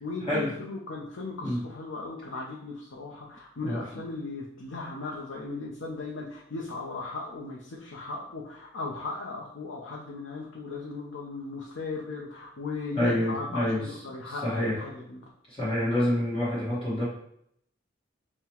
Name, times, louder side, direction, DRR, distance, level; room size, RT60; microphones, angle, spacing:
voice 1, 0.0-15.2, left 3 dB, 85° left, -3 dB, 0.6 m, -37 dB
voice 2, 12.9-13.8 14.3-14.8 15.5-17.1, left 1 dB, 30° left, -9 dB, 1.1 m, -27 dB
5.5 x 2.1 x 2.9 m, 0.72 s
head